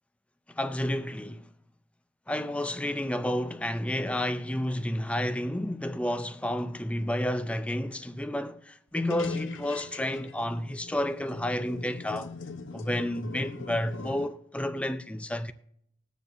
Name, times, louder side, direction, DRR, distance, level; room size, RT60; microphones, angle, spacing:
voice 1, 0.6-1.5 2.3-12.3 12.7-15.5, left 1 dB, 5° left, 0.4 m, -30 dB
sound 1, 9.0-14.3, left 4 dB, 70° left, 0.8 m, -42 dB
20.5 x 7.2 x 2.6 m
head